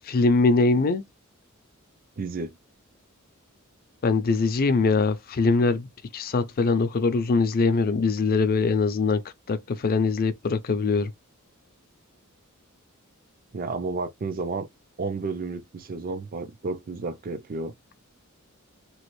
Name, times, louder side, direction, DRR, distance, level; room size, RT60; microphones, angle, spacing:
voice 1, 0.0-1.0 4.0-5.9 6.1-9.2 9.5-11.1, left 3 dB, 45° left, 0.4 m, -22 dB
voice 2, 2.2-2.5 13.5-14.7 15.0-17.7, right 3 dB, 40° right, 0.5 m, -31 dB
3.0 x 2.4 x 3.0 m
head